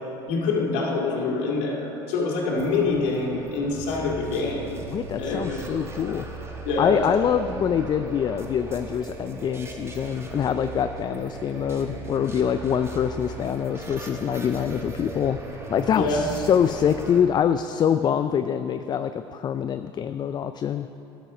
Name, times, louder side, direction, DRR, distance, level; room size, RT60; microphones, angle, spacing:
voice 1, 0.3-4.8 5.2-5.7 6.6-7.4 16.0-16.3, left 3 dB, 65° left, -2 dB, 2.3 m, -26 dB
sound 1, 2.6-17.2, right 3 dB, 20° right, 1.3 m, -38 dB
voice 2, 4.9-6.2 6.8-15.4 15.7-20.9, left 8 dB, 35° left, 10 dB, 0.4 m, -25 dB
11.5 x 7.1 x 6.1 m, 2.9 s
hypercardioid pair, 80°, 13 cm